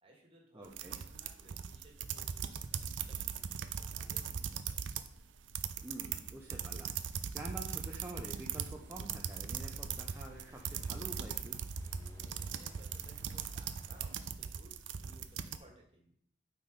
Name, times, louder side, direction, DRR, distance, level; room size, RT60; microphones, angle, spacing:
voice 1, 0.0-4.8 12.4-14.1 14.4-16.2, right 1 dB, 30° right, 0 dB, 2.0 m, -61 dB
voice 2, 0.5-1.0 5.8-11.6, right 1 dB, 15° right, -1 dB, 0.7 m, -48 dB
sound 1, 0.6-5.1 5.4-15.6, right 7 dB, 90° right, 0.5 m, -40 dB
sound 2, 8.2-14.2, left 1 dB, 15° left, 1.3 m, -55 dB
8.6 x 4.4 x 5.2 m, 0.66 s
head